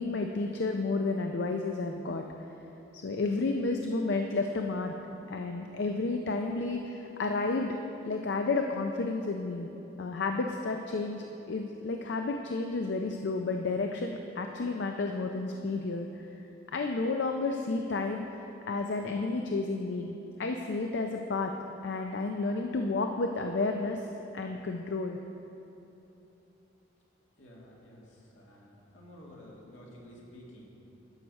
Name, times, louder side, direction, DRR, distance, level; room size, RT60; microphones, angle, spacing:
voice 1, 0.0-2.3 2.9-4.9 5.3-7.8 8.0-9.7 10.0-16.1 16.7-18.2 18.7-21.5 21.8-24.0 24.3-25.2, left 3 dB, 60° left, 4 dB, 0.4 m, -31 dB
voice 2, 27.4-30.7, equal, 75° left, -3 dB, 2.0 m, -51 dB
11.5 x 6.3 x 5.3 m, 3.0 s
head